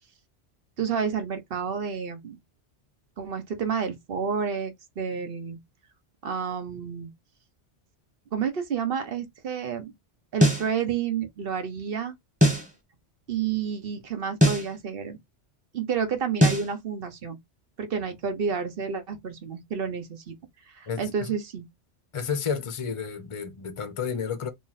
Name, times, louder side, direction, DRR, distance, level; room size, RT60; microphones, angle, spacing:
voice 1, 0.8-2.4 3.2-5.6 6.2-7.1 8.3-9.9 10.3-12.1 13.3-15.2 15.7-17.4 17.8-20.3 20.7-21.7, right 6 dB, 60° right, 1.0 m, -30 dB
sound 1, 10.4-10.7 12.4-12.7 14.4-14.7 16.4-16.7, equal, 5° right, 1.4 m, -20 dB
voice 2, 22.1-24.5, left 6 dB, 35° left, 0.6 m, -31 dB
3.0 x 2.5 x 3.9 m
omnidirectional pair, 1.2 m